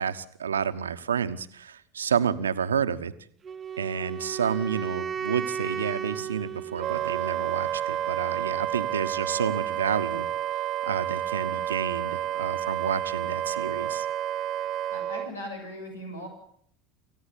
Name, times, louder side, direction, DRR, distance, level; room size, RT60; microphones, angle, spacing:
voice 1, 0.0-3.1 3.8-10.3 10.8-14.1, right 7 dB, 85° right, 11 dB, 1.3 m, -30 dB
Wind instrument woodwind instrument, 3.4-7.5, right 8 dB, 30° right, 1.3 m, -35 dB
Wind instrument woodwind instrument 2, 6.8-15.3, right 11 dB, 45° right, 0.9 m, -30 dB
voice 2, 14.9-16.3, equal, 85° left, 4 dB, 7.1 m, -38 dB
28.0 x 15.5 x 8.5 m, 0.66 s
figure-of-eight pair, 75°, 0 cm